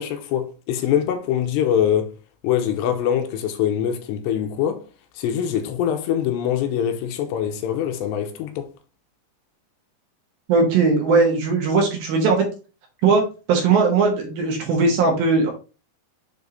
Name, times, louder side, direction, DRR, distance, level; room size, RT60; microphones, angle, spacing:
voice 1, 0.0-2.1 2.4-4.8 5.2-8.7, left 9 dB, 85° left, 2.8 m, -23 dB
voice 2, 10.5-12.5 13.0-13.2 13.5-15.5, right 4 dB, 65° right, 2.8 m, -18 dB
7.2 x 3.6 x 3.9 m
omnidirectional pair, 5.1 m